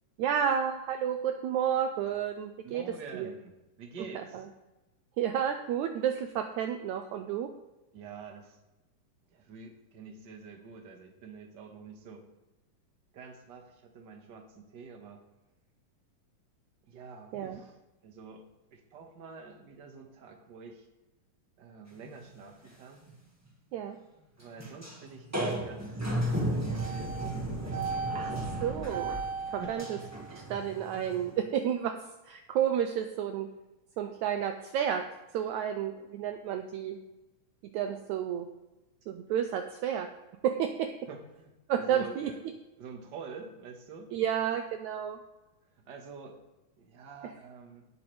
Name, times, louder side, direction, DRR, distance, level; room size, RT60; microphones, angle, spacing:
voice 1, 0.2-3.3 4.2-4.5 5.2-7.5 17.3-17.6 23.7-24.0 28.1-28.3 28.6-29.2 29.5-30.0 30.3-32.0 32.3-33.5 34.0-35.0 35.3-37.0 37.6-38.5 39.1-40.1 40.4-40.9 41.7-42.3 44.1-45.2, right 9 dB, 80° right, 6 dB, 1.7 m, -31 dB
voice 2, 2.6-4.5 7.9-8.6 9.3-12.3 13.1-15.2 16.9-17.8 18.0-18.4 18.7-20.9 21.6-23.0 24.4-26.1 26.3-28.5 29.5-29.9 41.1-41.5 41.8-42.4 42.8-44.1 45.7-46.4 46.8-47.9, right 5 dB, 45° right, 2 dB, 1.6 m, -47 dB
sound 1, 22.1-22.3 22.6-22.7 23.1-23.2 24.6-25.0 25.3-31.4, right 2 dB, 10° right, 0.8 m, -33 dB
17.5 x 7.9 x 3.4 m, 1.0 s
omnidirectional pair, 3.9 m